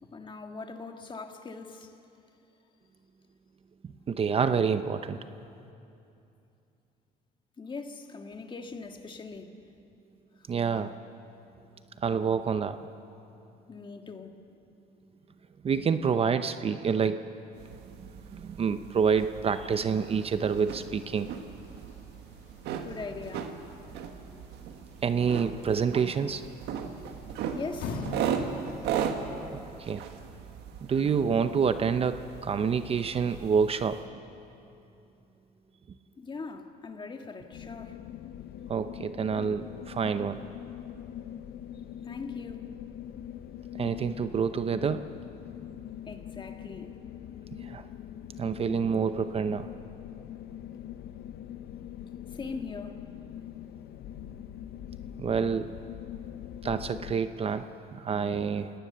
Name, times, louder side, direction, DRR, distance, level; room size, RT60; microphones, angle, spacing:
voice 1, 0.0-2.0 7.6-9.5 10.4-10.5 13.7-14.4 22.8-23.6 27.5-28.1 36.2-38.0 42.0-42.7 46.1-47.0 52.3-53.1, left 4 dB, 30° left, 1.7 m, -41 dB
voice 2, 4.1-5.2 10.5-10.9 12.0-12.8 15.6-17.3 18.3-21.3 25.0-26.4 29.8-30.0 30.9-34.0 38.7-40.4 43.8-45.1 47.6-47.8 48.4-49.7 55.2-55.7 56.6-57.7 57.9-58.7, right 6 dB, 35° right, 0.7 m, -27 dB
sound 1, 17.6-34.0, right 7 dB, 85° right, 1.7 m, -38 dB
sound 2, 19.8-28.9, left 3 dB, 90° left, 2.8 m, -45 dB
sound 3, 37.5-57.1, left 10 dB, 70° left, 0.8 m, -43 dB
28.0 x 18.0 x 6.8 m
cardioid pair, 110°, 17 cm